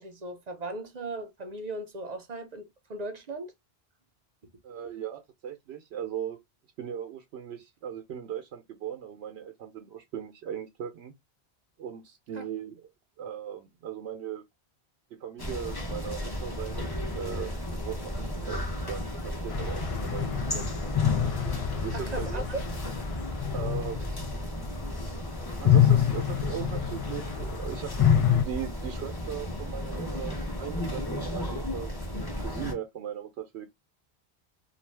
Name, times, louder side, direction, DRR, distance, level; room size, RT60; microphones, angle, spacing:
voice 1, 0.0-3.5 12.3-12.4 21.9-22.6, right 2 dB, 45° right, 0.7 m, -37 dB
voice 2, 4.6-6.4 6.8-11.1 11.8-12.9 13.2-14.4 15.1-16.8 17.1-20.9 21.8-22.5 23.5-24.2 25.6-33.7, right 9 dB, 80° right, 0.8 m, -38 dB
sound 1, 15.4-32.7, left 1 dB, 25° left, 0.8 m, -34 dB
sound 2, 19.5-25.1 25.5-28.4, left 9 dB, 50° left, 0.4 m, -26 dB
2.5 x 2.3 x 3.2 m
omnidirectional pair, 1.1 m